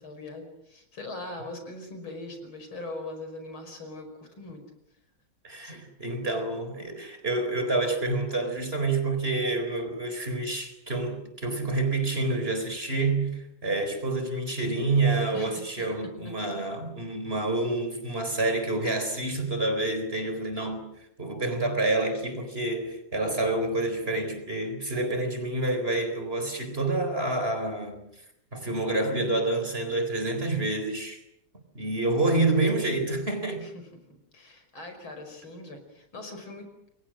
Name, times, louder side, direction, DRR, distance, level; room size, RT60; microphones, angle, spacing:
voice 1, 0.0-4.6 5.6-5.8 15.3-15.9 33.6-33.7 34.3-36.6, left 2 dB, 80° left, 6.2 m, -41 dB
voice 2, 5.4-20.9 21.2-28.0 28.5-31.2 31.7-33.6, right 2 dB, 30° right, 4.2 m, -28 dB
29.0 x 23.0 x 6.4 m
omnidirectional pair, 2.2 m